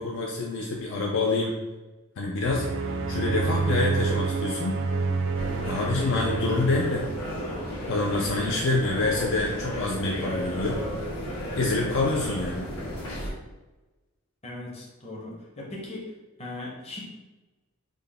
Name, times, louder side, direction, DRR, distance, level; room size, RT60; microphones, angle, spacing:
voice 1, 0.0-1.5 2.2-2.7 3.1-4.8 5.6-7.0 7.9-10.8 11.6-12.7, left 3 dB, 55° left, -1 dB, 0.4 m, -26 dB
sound 1, 2.4-7.5, right 4 dB, 60° right, 0.3 m, -29 dB
sound 2, 5.3-13.3, equal, 75° left, 1.3 m, -33 dB
voice 2, 14.4-16.1 16.4-17.0, left 2 dB, 30° left, -3 dB, 0.8 m, -38 dB
3.7 x 2.1 x 3.4 m, 1.1 s
head